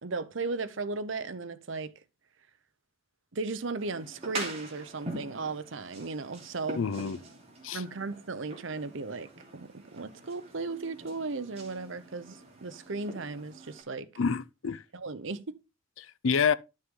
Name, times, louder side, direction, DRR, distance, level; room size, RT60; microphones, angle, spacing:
voice 1, 0.0-1.9 3.3-6.9 7.7-14.1 14.9-15.5, right 3 dB, 65° right, 0.8 m, -36 dB
sound 1, 3.8-13.8, right 2 dB, 30° right, 3.0 m, -44 dB
voice 2, 6.8-7.2 7.6-7.8 14.2-14.8 16.0-16.5, left 6 dB, 70° left, 0.5 m, -28 dB
11.5 x 6.4 x 3.7 m
head